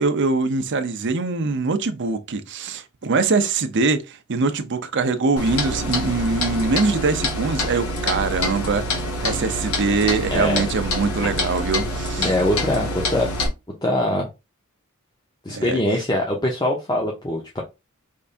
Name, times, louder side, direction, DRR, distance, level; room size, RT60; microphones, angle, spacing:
voice 1, 0.0-8.8 9.2-12.3 15.5-15.8, right 4 dB, 55° right, 0.7 m, -23 dB
Clock, 5.4-13.5, left 1 dB, 90° left, 1.5 m, -26 dB
voice 2, 10.3-10.6 12.2-13.3 13.8-14.3 15.4-17.6, left 1 dB, 20° left, 0.8 m, -22 dB
5.3 x 3.4 x 2.5 m
head